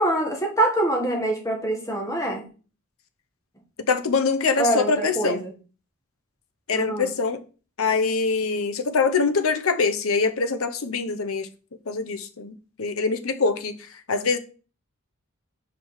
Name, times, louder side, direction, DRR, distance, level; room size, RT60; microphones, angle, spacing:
voice 1, 0.0-2.4 4.6-5.5 6.7-7.1, right 1 dB, 15° left, 1 dB, 1.6 m, -24 dB
voice 2, 3.9-5.4 6.7-7.4 7.8-11.5 11.9-14.4, left 4 dB, 75° left, 8 dB, 0.8 m, -24 dB
5.1 x 4.9 x 4.7 m, 0.36 s
head